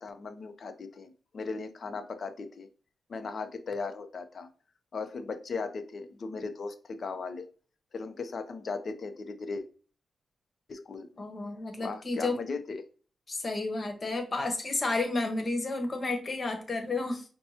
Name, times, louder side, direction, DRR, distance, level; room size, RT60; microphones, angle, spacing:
voice 1, 0.0-2.7 3.1-4.5 4.9-7.4 7.9-9.6 10.7-11.2 11.8-12.8, left 4 dB, 55° left, 9 dB, 0.6 m, -37 dB
voice 2, 11.2-12.4 13.3-17.2, left 2 dB, 35° left, 5 dB, 1.1 m, -31 dB
5.5 x 2.2 x 2.8 m, 0.38 s
cardioid pair, 95°, 0 cm